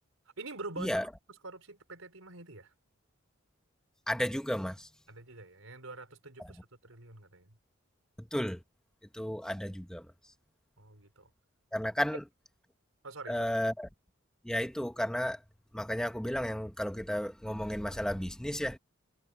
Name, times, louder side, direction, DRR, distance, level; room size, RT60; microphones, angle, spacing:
voice 1, 0.4-2.7 5.1-7.6 10.8-11.3 13.0-13.5, right 3 dB, 80° right, 4.1 m, -46 dB
voice 2, 4.1-4.9 8.3-8.6 9.1-10.0 11.7-12.2 13.3-13.9 14.4-15.4 15.7-18.8, equal, 5° left, 0.9 m, -33 dB
head